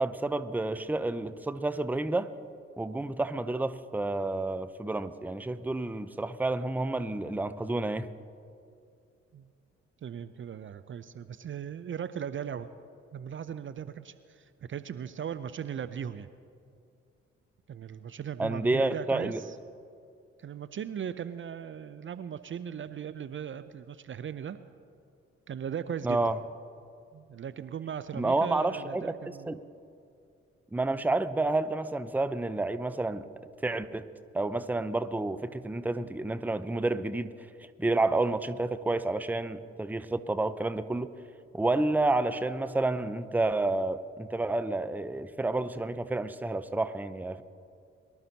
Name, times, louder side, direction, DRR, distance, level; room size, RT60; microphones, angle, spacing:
voice 1, 0.0-2.3 2.8-8.1 18.4-19.4 26.0-26.4 28.2-29.6 30.7-33.3 33.6-34.1 34.3-37.3 37.8-41.1 41.5-47.4, right 2 dB, 5° right, 13 dB, 0.7 m, -30 dB
voice 2, 10.0-12.7 13.1-16.3 17.7-19.6 20.4-24.6 25.5-26.2 27.1-29.6, right 8 dB, 40° right, 13 dB, 0.6 m, -38 dB
23.5 x 12.5 x 2.9 m, 2.5 s
hypercardioid pair, 40°, 31 cm